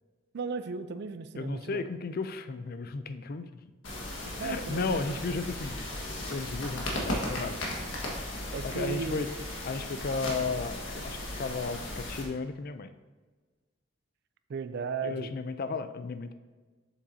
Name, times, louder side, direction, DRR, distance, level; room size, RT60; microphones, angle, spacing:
voice 1, 0.3-1.8 4.4-5.2 8.5-9.2 14.5-15.3, right 5 dB, 60° right, 11 dB, 0.4 m, -35 dB
voice 2, 1.3-3.6 4.4-5.8 6.3-7.6 8.6-9.3 9.6-12.9 15.0-16.3, left 4 dB, 50° left, 11 dB, 0.4 m, -34 dB
sound 1, 3.8-12.2, left 1 dB, 80° left, 1.5 m, -36 dB
7.2 x 7.1 x 2.7 m, 1.3 s
head